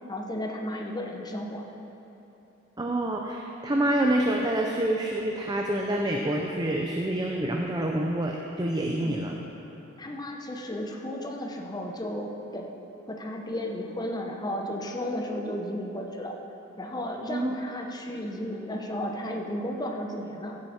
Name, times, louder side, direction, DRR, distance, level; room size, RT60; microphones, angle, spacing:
voice 1, 0.1-1.7 9.0-9.2 10.0-12.8 13.1-16.3 16.8-20.6, left 1 dB, 20° left, 2 dB, 0.9 m, -34 dB
voice 2, 2.8-9.3 17.3-17.6, right 1 dB, 20° right, 0 dB, 0.6 m, -27 dB
15.0 x 7.8 x 4.3 m, 3.0 s
head